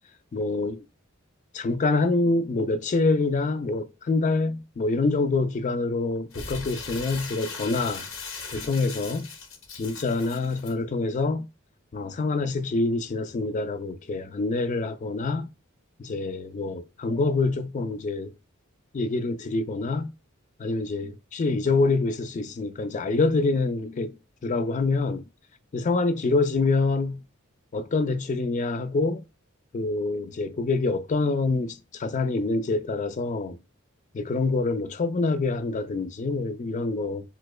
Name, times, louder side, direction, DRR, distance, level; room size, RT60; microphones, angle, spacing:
voice 1, 0.3-0.8 1.5-8.1 8.5-9.3 9.8-11.5 11.9-15.5 16.0-18.3 18.9-20.1 20.6-24.2 24.4-25.2 25.7-27.2 27.7-29.2 29.7-33.6 34.1-37.2, left 3 dB, 35° left, 0.3 m, -26 dB
Crumpling crinkling, 6.3-10.7, left 4 dB, 70° left, 1.0 m, -39 dB
4.4 x 2.1 x 2.4 m
head